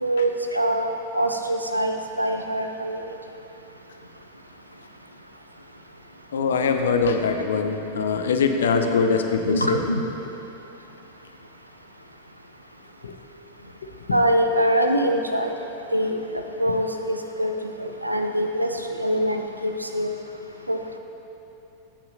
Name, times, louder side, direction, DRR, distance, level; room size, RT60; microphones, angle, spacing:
voice 1, 0.0-3.1 9.5-10.0 14.1-15.5 15.9-17.5 17.8-18.7 19.0-20.1 20.7-20.8, right 1 dB, 85° right, 5 dB, 0.5 m, -24 dB
voice 2, 6.3-9.8 13.0-13.1, left 5 dB, 65° left, 5 dB, 0.6 m, -22 dB
15.0 x 5.7 x 2.6 m, 2.9 s
figure-of-eight pair, 90°, 0 cm